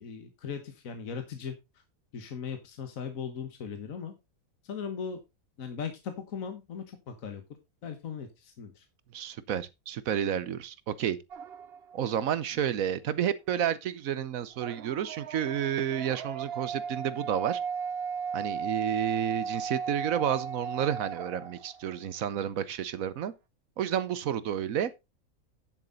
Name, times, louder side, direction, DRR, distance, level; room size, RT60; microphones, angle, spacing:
voice 1, 0.0-1.5 2.1-4.1 4.6-5.2 5.6-7.4 7.8-8.8, left 6 dB, 65° left, 1.7 m, -38 dB
voice 2, 9.1-11.2 11.9-17.6 18.3-23.3 23.8-24.9, right 9 dB, 70° right, 1.2 m, -30 dB
sound 1, 11.3-12.1 14.5-22.0, right 6 dB, 50° right, 1.0 m, -36 dB
10.0 x 7.4 x 4.0 m
omnidirectional pair, 1.5 m